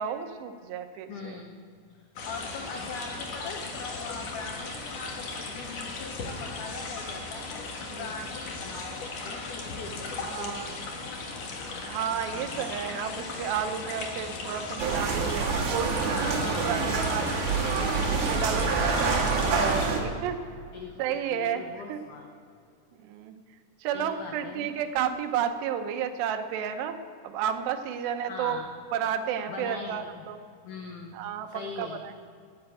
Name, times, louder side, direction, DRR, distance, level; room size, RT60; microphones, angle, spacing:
voice 1, 0.0-1.4 7.9-8.1 10.2-10.7 11.9-17.4 18.0-20.4 21.0-21.6 21.9-22.0 23.0-23.4 23.8-27.0 27.2-28.6 28.9-30.4 31.1-32.1, right 8 dB, 80° right, 7 dB, 3.0 m, -32 dB
voice 2, 1.1-1.5 1.9-10.7 12.3-12.7 16.1-17.0 18.7-19.2 20.7-22.3 23.9-24.7 28.3-28.7 29.5-30.3 30.6-31.2 31.5-32.1, left 4 dB, 80° left, 2 dB, 1.8 m, -41 dB
sound 1, 2.2-19.9, left 3 dB, 60° left, 1.8 m, -37 dB
sound 2, 14.8-20.0, right 4 dB, 65° right, 3.1 m, -26 dB
13.0 x 8.0 x 9.0 m, 2.3 s
omnidirectional pair, 5.0 m